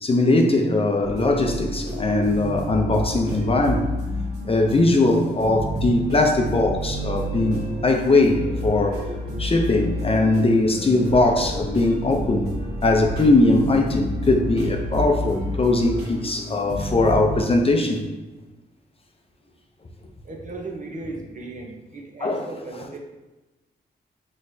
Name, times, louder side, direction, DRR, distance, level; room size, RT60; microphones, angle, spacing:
voice 1, 0.0-3.9 4.4-9.0 9.4-12.5 12.8-18.0 22.2-22.5, left 2 dB, 30° left, 2 dB, 0.6 m, -20 dB
sound 1, 1.0-17.4, equal, 65° right, 1.5 m, -30 dB
voice 2, 20.2-23.0, right 3 dB, 45° right, 1 dB, 0.9 m, -36 dB
5.9 x 3.2 x 2.7 m, 1.1 s
cardioid pair, 85°, 18 cm